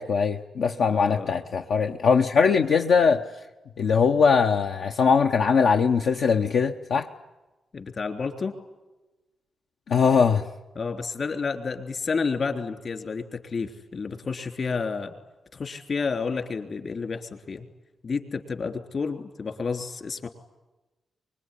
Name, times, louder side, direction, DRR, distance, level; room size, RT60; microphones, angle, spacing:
voice 1, 0.0-3.3 3.8-7.1 9.9-10.5, left 5 dB, 80° left, 3 dB, 0.9 m, -21 dB
voice 2, 0.9-1.4 7.7-8.6 10.7-15.2 15.5-17.7 18.0-20.3, left 5 dB, 55° left, 6 dB, 3.3 m, -30 dB
24.5 x 21.5 x 10.0 m, 1.1 s
cardioid pair, 65°, 0 cm